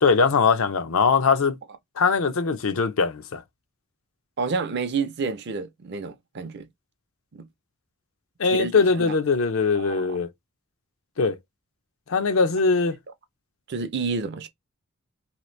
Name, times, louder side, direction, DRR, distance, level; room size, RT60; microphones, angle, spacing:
voice 1, 0.0-1.6 2.0-3.4 8.4-10.3 11.2-11.4 12.1-13.0, left 4 dB, 70° left, 0.6 m, -21 dB
voice 2, 4.4-6.7 7.3-7.5 8.4-9.1 9.7-10.2 13.7-14.5, right 4 dB, 50° right, 0.5 m, -30 dB
2.9 x 2.4 x 3.1 m
head